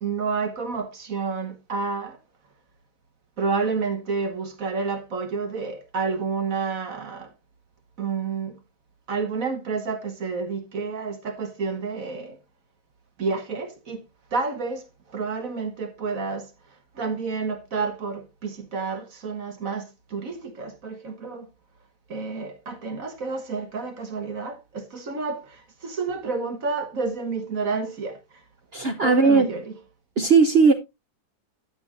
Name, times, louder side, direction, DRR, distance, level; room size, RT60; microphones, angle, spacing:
voice 1, 0.0-2.2 3.4-7.3 8.0-8.6 9.1-12.4 13.2-14.0 14.3-16.5 16.9-21.5 22.1-28.2 29.0-29.6, right 4 dB, 50° right, 1.5 m, -30 dB
voice 2, 28.7-29.5 30.2-30.7, right 4 dB, 70° right, 0.5 m, -17 dB
12.0 x 8.0 x 2.5 m
omnidirectional pair, 2.1 m